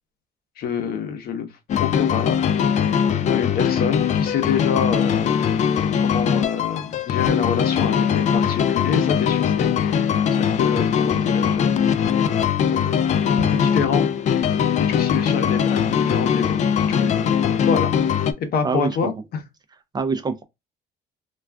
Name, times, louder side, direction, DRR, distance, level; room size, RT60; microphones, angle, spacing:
voice 1, 0.6-1.5 1.8-2.4 2.7-5.4 6.0-11.7 12.7-13.1 13.4-14.1 14.3-17.9 18.4-19.1, left 6 dB, 65° left, 0.8 m, -27 dB
sound 1, 1.7-18.3, left 8 dB, 45° left, 0.4 m, -21 dB
voice 2, 18.6-19.1 19.9-20.4, right 4 dB, 25° right, 0.4 m, -24 dB
2.3 x 2.2 x 3.4 m
cardioid pair, 110°, 17 cm